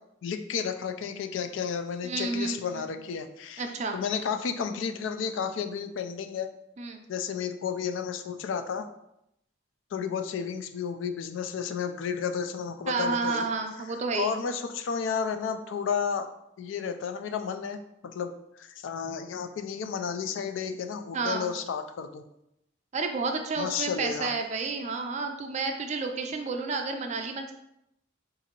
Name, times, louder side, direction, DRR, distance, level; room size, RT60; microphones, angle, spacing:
voice 1, 0.2-3.6 3.9-6.5 7.1-8.9 9.9-13.5 14.1-16.3 16.6-22.2 23.6-24.3, left 6 dB, 75° left, 7 dB, 0.3 m, -32 dB
voice 2, 2.0-3.0 3.6-4.0 6.8-7.0 12.9-14.3 21.1-21.5 22.9-27.5, right 4 dB, 35° right, 5 dB, 0.4 m, -31 dB
3.8 x 2.6 x 2.8 m, 0.81 s
head